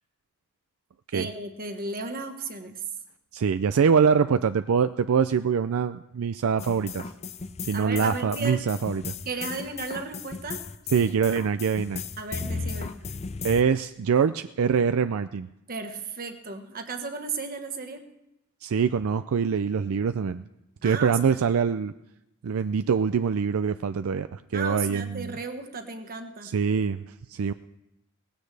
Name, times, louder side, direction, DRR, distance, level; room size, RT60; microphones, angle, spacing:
voice 1, 1.1-2.8 7.7-8.7 9.2-10.6 12.2-12.9 15.7-18.1 20.8-21.2 24.5-26.5, right 4 dB, 45° right, 6 dB, 1.4 m, -34 dB
voice 2, 3.3-7.0 7.6-9.1 10.9-12.0 13.4-15.5 18.6-20.4 20.8-21.9 22.4-25.4 26.4-27.0 27.3-27.5, right 6 dB, 75° right, 11 dB, 0.4 m, -24 dB
sound 1, 6.6-13.6, left 5 dB, 30° left, 0.6 m, -36 dB
18.5 x 16.0 x 3.3 m, 0.88 s
head